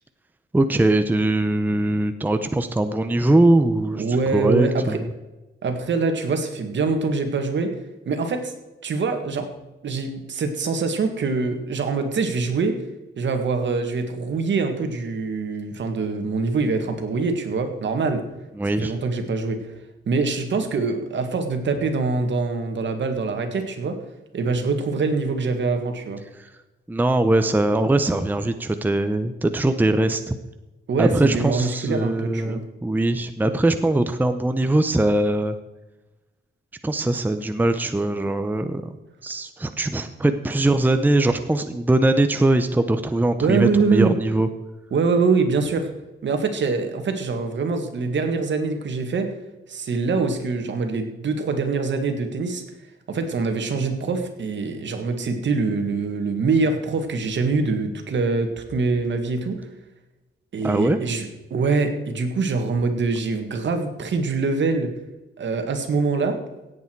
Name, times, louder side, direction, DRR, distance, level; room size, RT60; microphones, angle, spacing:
voice 1, 0.5-4.0 4.3-5.1 18.6-18.9 26.4-26.5 26.9-30.4 31.0-35.6 36.8-39.0 39.2-44.5 60.6-61.0, right 2 dB, 10° right, 9 dB, 0.7 m, -21 dB
voice 2, 4.0-5.0 5.6-7.7 8.1-8.5 8.8-9.5 9.8-12.8 13.2-18.2 18.8-19.6 20.1-24.0 24.3-26.2 30.9-32.7 43.4-44.1 44.9-45.9 46.2-49.3 49.7-52.6 53.1-59.6 60.5-64.9 65.4-66.4, right 4 dB, 65° right, 6 dB, 1.9 m, -24 dB
17.0 x 8.4 x 4.6 m, 1.1 s
wide cardioid pair, 135°, 21 cm